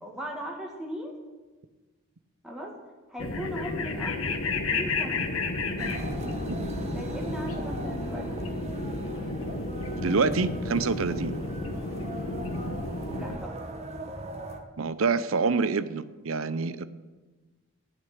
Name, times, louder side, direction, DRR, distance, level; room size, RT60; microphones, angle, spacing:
voice 1, 0.0-1.2 2.4-2.8 3.1-4.2 4.5-5.2 6.9-8.4 13.2-13.6, equal, 5° right, -2 dB, 2.0 m, -38 dB
sound 1, 3.2-13.4, left 3 dB, 75° left, 1.4 m, -32 dB
sound 2, 5.8-14.6, right 1 dB, 30° right, 1.3 m, -39 dB
voice 2, 10.0-11.3 14.8-16.9, right 4 dB, 70° right, 14 dB, 0.7 m, -26 dB
14.5 x 6.6 x 10.0 m, 1.3 s
head